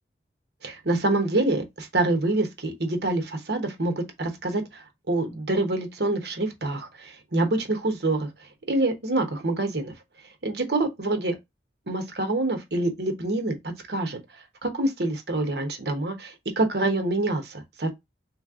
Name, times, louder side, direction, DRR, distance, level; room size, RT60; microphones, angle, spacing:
voice 1, 0.6-8.3 8.7-9.9 10.4-11.4 11.9-14.2 14.6-17.9, right 2 dB, 70° right, 1.1 m, -26 dB
3.3 x 3.2 x 3.6 m
head